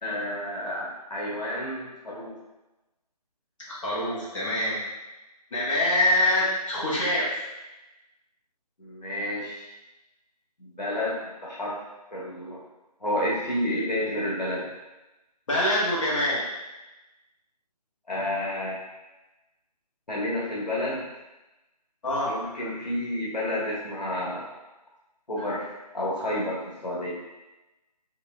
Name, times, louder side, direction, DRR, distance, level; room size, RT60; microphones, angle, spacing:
voice 1, 0.0-2.3 8.8-9.7 10.6-11.8 12.1-12.6 13.0-14.6 18.1-18.8 20.1-21.1 22.3-24.5 25.3-25.7 25.9-27.1, left 1 dB, 90° left, -6 dB, 1.3 m, -30 dB
voice 2, 3.7-4.8 5.5-7.4 15.5-16.4 22.0-22.5, left 1 dB, 50° left, -7 dB, 1.3 m, -25 dB
4.6 x 3.0 x 2.2 m, 1.0 s
figure-of-eight pair, 155°, 21 cm